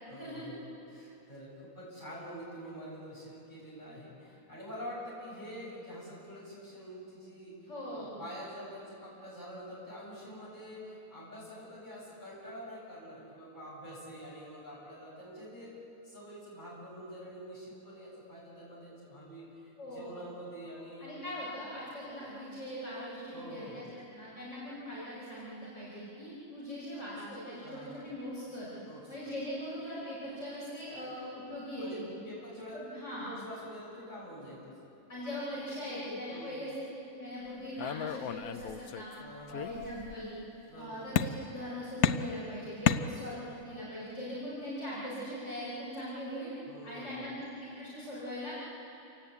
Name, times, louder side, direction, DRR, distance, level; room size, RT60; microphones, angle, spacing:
voice 1, 0.0-7.5 7.9-15.7 16.0-21.2 23.3-23.9 27.6-28.1 28.8-29.3 31.8-32.0 32.2-32.8 33.1-34.9 36.3-36.6 39.2-39.6 40.7-41.0 42.9-43.2 46.7-47.3, equal, 30° left, -6 dB, 8.0 m, -46 dB
voice 2, 7.7-8.2 19.8-20.1 21.0-23.9 24.1-28.7 29.1-32.1 32.7-33.3 35.1-36.7 37.1-39.1 39.5-40.3 40.7-46.5 46.8-48.5, equal, 55° left, -8 dB, 5.6 m, -41 dB
sound 1, 37.8-39.1 39.5-40.2 41.2-41.7 42.0-43.6, left 9 dB, 80° left, 1.2 m, -32 dB
28.0 x 18.0 x 8.4 m, 2.9 s
omnidirectional pair, 1.5 m